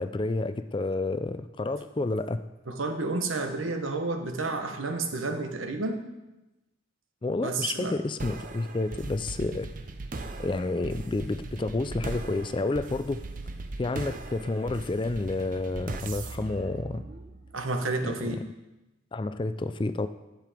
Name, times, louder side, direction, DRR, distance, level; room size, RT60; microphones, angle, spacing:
voice 1, 0.0-2.4 7.2-9.7 10.4-13.2 13.8-17.0 18.0-18.4 19.1-20.1, left 2 dB, 25° left, 11 dB, 0.3 m, -30 dB
voice 2, 2.7-6.0 7.4-8.0 17.5-18.4, right 3 dB, 85° right, 5 dB, 1.1 m, -30 dB
sound 1, 8.2-17.6, right 3 dB, 40° right, 0.6 m, -39 dB
10.5 x 7.7 x 5.0 m, 1.0 s
head